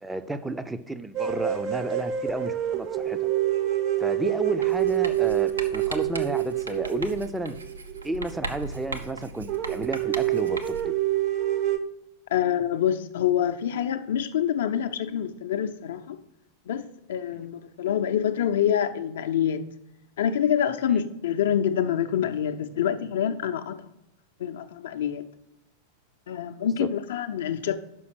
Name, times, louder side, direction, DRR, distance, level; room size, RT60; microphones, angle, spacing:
voice 1, 0.0-3.3 4.0-7.6 8.0-11.0 17.4-17.5 20.9-21.0 26.6-26.9, right 2 dB, 10° right, 0.5 m, -32 dB
sound 1, 1.1-8.5 8.8-8.9 9.1-9.2 9.5-11.8, right 12 dB, 40° right, 0.8 m, -27 dB
Writing, 4.6-11.0, right 3 dB, 75° right, 0.6 m, -38 dB
voice 2, 12.3-16.2 16.7-19.7 20.2-23.9 24.4-25.3 26.3-27.8, left 9 dB, 60° left, 0.5 m, -26 dB
6.2 x 5.6 x 6.0 m
figure-of-eight pair, 90°, 0 cm